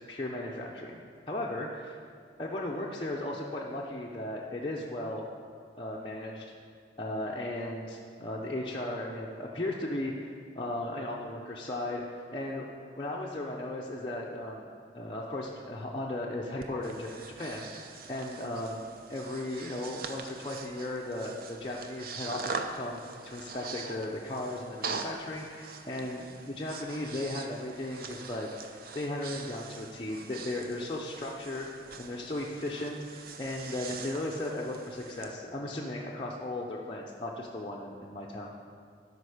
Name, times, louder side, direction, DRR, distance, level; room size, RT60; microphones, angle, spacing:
voice 1, 0.1-1.0 1.3-2.0 2.4-5.2 5.8-6.5 7.0-12.7 13.0-14.6 14.9-31.7 32.0-38.5, left 1 dB, 30° left, -4 dB, 0.6 m, -36 dB
Breathing, 16.6-35.3, right 4 dB, 55° right, 0.6 m, -43 dB
12.5 x 5.2 x 4.9 m, 2.3 s
head